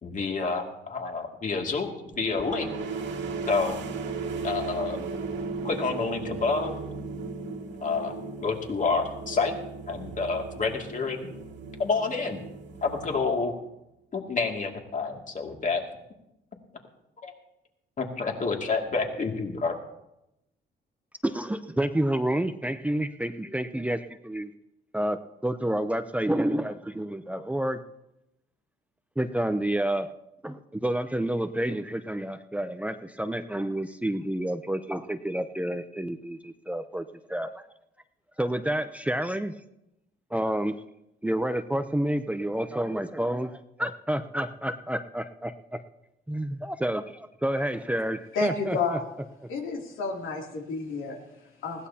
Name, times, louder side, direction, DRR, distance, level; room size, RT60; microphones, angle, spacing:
voice 1, 0.0-2.7 3.5-3.8 4.4-5.1 5.6-6.8 7.8-8.2 8.4-9.6 9.9-11.3 11.8-12.4 12.8-13.5 14.1-15.8 17.2-17.3 18.0-19.7, left 4 dB, 40° left, 2 dB, 2.5 m, -28 dB
sound 1, 2.1-13.7, right 4 dB, 70° right, 2.1 m, -36 dB
voice 2, 21.2-24.5 24.9-25.2 25.4-27.8 29.2-30.1 30.4-37.6 38.4-39.5 40.3-40.7 41.2-45.8 46.3-49.0, right 1 dB, 5° right, 9 dB, 0.7 m, -29 dB
voice 3, 48.3-49.1 49.5-51.9, left 4 dB, 85° left, 0 dB, 2.9 m, -31 dB
20.0 x 16.5 x 2.9 m, 0.88 s
cardioid pair, 90°, 20 cm